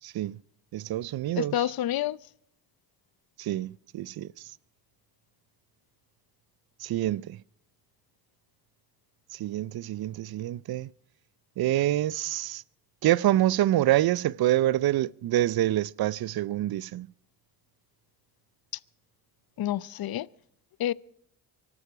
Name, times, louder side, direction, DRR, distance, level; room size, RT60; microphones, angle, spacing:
voice 1, 0.0-0.4 0.7-1.5 3.4-4.3 6.8-7.4 9.3-10.9 11.6-12.6 13.0-17.1, right 14 dB, 50° right, 0.6 m, -26 dB
voice 2, 1.3-2.2 19.6-20.3 20.8-20.9, left 12 dB, 50° left, 0.7 m, -28 dB
24.0 x 12.0 x 4.9 m
supercardioid pair, 60°, 47 cm